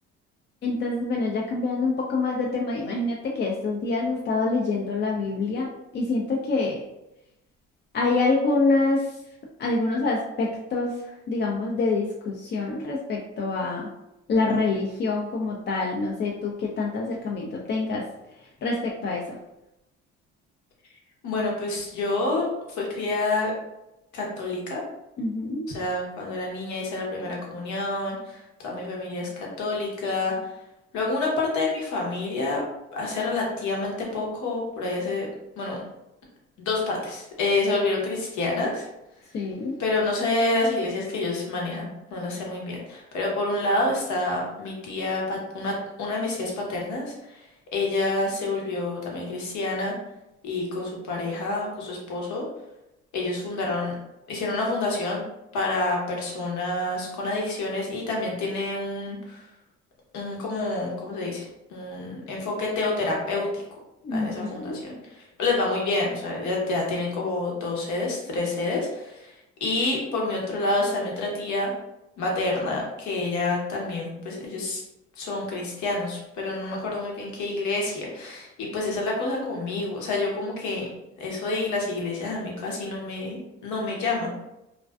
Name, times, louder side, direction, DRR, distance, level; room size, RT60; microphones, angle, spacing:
voice 1, 0.6-5.7 5.9-6.8 7.9-9.2 9.6-11.0 11.3-13.9 14.3-18.1 18.6-19.4 25.2-25.7 39.3-39.8 64.0-64.8, left 3 dB, 35° left, -2 dB, 0.4 m, -26 dB
voice 2, 21.2-22.5 22.8-23.5 24.1-24.8 25.7-30.3 30.9-32.6 32.9-35.3 35.6-35.8 36.6-38.9 39.8-41.9 42.1-47.4 47.7-49.9 50.4-52.4 53.1-53.9 54.3-55.2 55.5-59.4 60.1-61.4 61.7-63.6 64.1-65.0 65.4-69.3 69.6-71.7 72.2-74.8 75.2-80.9 81.2-84.3, left 2 dB, 70° left, -2 dB, 0.9 m, -28 dB
2.4 x 2.3 x 2.2 m, 0.91 s
supercardioid pair, 80°, 31 cm